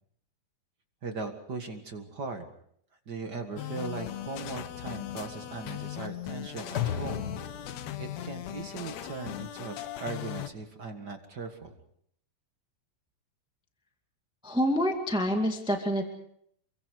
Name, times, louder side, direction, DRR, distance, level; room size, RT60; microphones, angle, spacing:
voice 1, 1.0-2.5 3.1-7.3 7.7-9.8 10.0-11.8, right 4 dB, 40° right, 5 dB, 1.8 m, -39 dB
sound 1, 3.6-10.5, left 12 dB, 65° left, 1.9 m, -39 dB
sound 2, 4.4-9.5, left 8 dB, 90° left, 0.9 m, -38 dB
voice 2, 14.4-16.1, equal, ahead, 3 dB, 1.4 m, -27 dB
29.0 x 24.0 x 4.8 m, 0.68 s
omnidirectional pair, 4.0 m